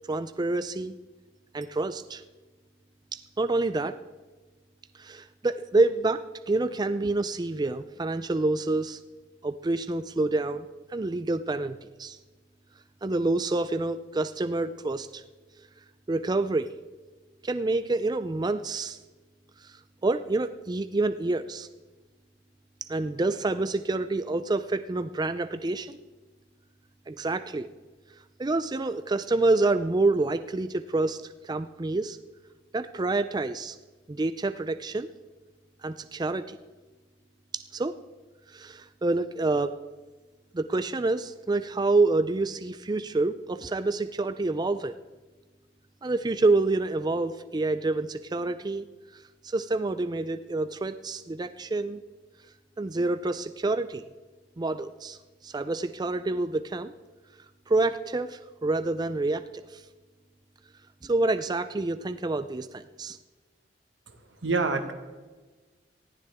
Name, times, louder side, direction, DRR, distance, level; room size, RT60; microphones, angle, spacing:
voice 1, 0.1-0.9 1.5-2.2 3.1-4.0 5.0-9.0 9.4-12.2 13.0-15.2 16.1-16.7 17.4-19.0 19.6-19.7 20.0-21.7 22.8-26.0 27.1-27.7 28.4-32.2 32.7-33.8 34.1-35.1 35.8-36.6 37.5-38.0 38.5-39.7 40.5-45.0 46.0-48.8 49.1-52.0 52.8-54.1 54.6-55.2 55.4-56.9 57.7-59.8 61.0-63.2, right 2 dB, 25° right, 11 dB, 0.4 m, -27 dB
voice 2, 64.4-64.9, right 3 dB, 90° right, 7 dB, 1.6 m, -26 dB
19.0 x 14.5 x 3.6 m, 1.3 s
head